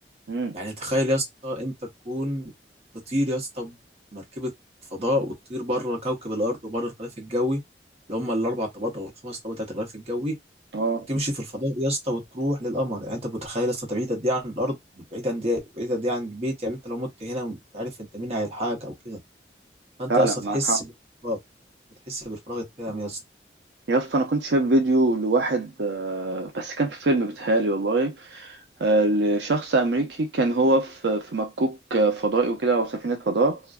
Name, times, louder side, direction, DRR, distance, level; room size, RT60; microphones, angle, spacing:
voice 1, 0.5-2.5 3.1-3.8 4.1-4.5 4.9-7.6 8.1-10.3 11.1-19.2 20.0-20.9 21.2-21.4 22.1-23.2, equal, 35° right, 0.9 m, -28 dB
voice 2, 10.7-11.1 20.1-20.8 23.9-33.6, right 2 dB, 80° right, 0.6 m, -23 dB
2.5 x 2.2 x 2.3 m
head